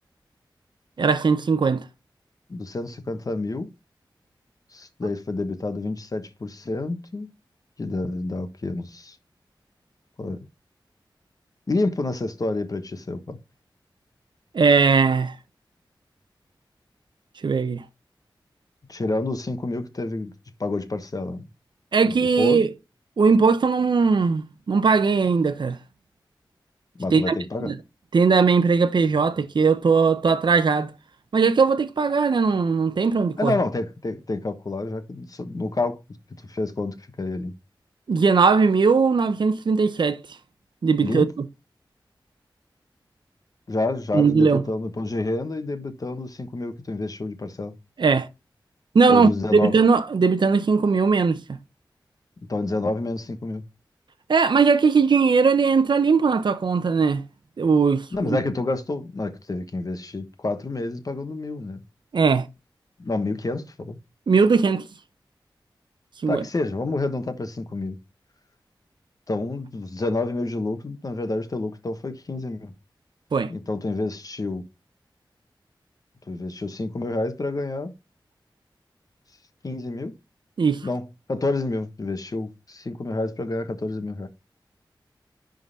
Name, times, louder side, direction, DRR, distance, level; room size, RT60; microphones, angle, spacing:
voice 1, 1.0-1.8 14.5-15.4 17.4-17.8 21.9-22.7 23.2-25.8 27.1-27.3 27.6-27.7 28.1-30.9 31.3-33.5 38.1-40.2 40.8-41.3 44.1-44.6 48.0-48.3 48.9-51.4 54.3-57.2 57.6-58.4 62.1-62.5 64.3-64.9 66.2-66.4 73.3-73.5 80.6-80.9, right 5 dB, 65° right, 0.7 m, -19 dB
voice 2, 2.5-3.7 4.7-7.3 7.8-9.2 10.2-10.4 11.7-13.4 18.9-20.3 20.6-21.5 22.0-22.6 27.0-27.7 33.4-36.0 36.5-37.5 41.0-41.3 43.7-47.7 49.1-49.8 52.5-53.6 58.1-61.8 63.0-64.0 66.3-68.0 69.3-72.7 73.5-74.6 76.3-77.9 79.6-80.1 80.8-84.3, left 2 dB, 45° left, 1.2 m, -28 dB
10.5 x 3.9 x 4.1 m
wide cardioid pair, 90°, 8 cm